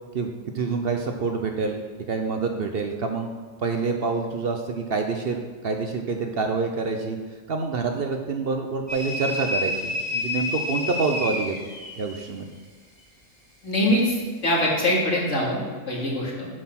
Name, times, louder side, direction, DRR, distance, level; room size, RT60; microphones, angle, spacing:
voice 1, 0.5-3.3 3.6-7.2 7.5-11.6 12.0-12.5, right 4 dB, 55° right, 4 dB, 0.8 m, -27 dB
sound 1, 8.9-12.2, left 2 dB, 30° left, 2.6 m, -29 dB
voice 2, 13.6-14.1 14.4-15.6 15.9-16.5, left 1 dB, 65° left, -4 dB, 2.5 m, -23 dB
7.6 x 6.4 x 5.8 m, 1.5 s
omnidirectional pair, 1.4 m